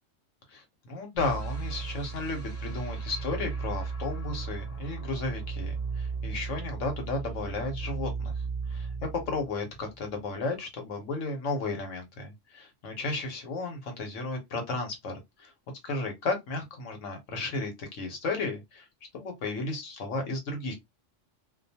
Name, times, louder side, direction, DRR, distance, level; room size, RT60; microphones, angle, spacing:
voice 1, 0.5-8.3 8.7-15.5 15.8-18.8 19.1-20.8, left 3 dB, 75° left, 1.2 m, -34 dB
sound 1, 1.2-10.3, right 5 dB, 15° left, 0.8 m, -35 dB
2.6 x 2.2 x 2.7 m
omnidirectional pair, 1.3 m